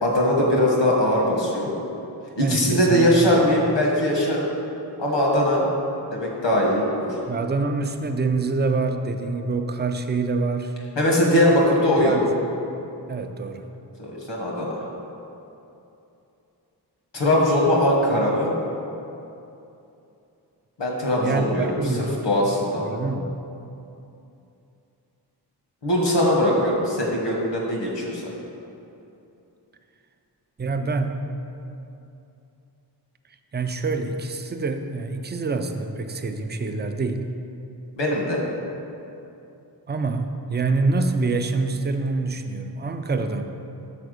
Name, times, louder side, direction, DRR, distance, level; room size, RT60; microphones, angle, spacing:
voice 1, 0.0-1.7 2.4-4.5 5.0-5.7 6.1-7.1 11.0-12.2 14.0-14.9 17.1-18.5 20.8-21.7 22.0-22.8 25.8-28.2 38.0-38.4, left 1 dB, 85° left, -2 dB, 1.5 m, -21 dB
voice 2, 2.4-3.4 7.3-10.7 11.8-12.3 13.1-13.7 21.2-22.2 22.8-23.4 30.6-31.2 33.5-37.3 39.9-43.4, right 3 dB, 25° right, 7 dB, 0.4 m, -26 dB
5.9 x 4.5 x 6.5 m, 2.8 s
wide cardioid pair, 110°, 42 cm